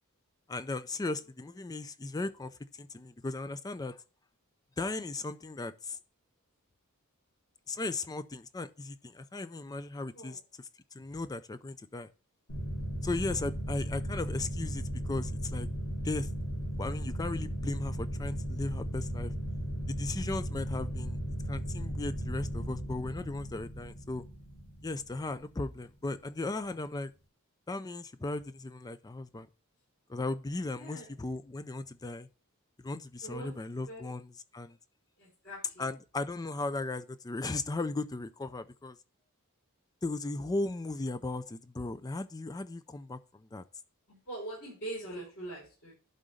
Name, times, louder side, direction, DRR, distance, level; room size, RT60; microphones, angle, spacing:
voice 1, 0.5-4.0 4.8-6.0 7.7-10.7 10.9-12.1 13.0-15.7 16.0-16.3 16.8-19.3 19.9-21.2 21.5-24.2 24.8-27.1 27.7-29.5 30.1-32.3 32.8-34.8 35.8-39.0 40.0-43.6, left 2 dB, 15° left, 0.4 m, -36 dB
sound 1, 12.5-25.7, equal, 90° left, 2.4 m, -36 dB
voice 2, 30.7-31.1 33.2-33.5 33.9-34.1 35.2-35.9 44.1-45.9, right 1 dB, 55° left, 4.9 m, -43 dB
11.5 x 3.9 x 5.0 m
head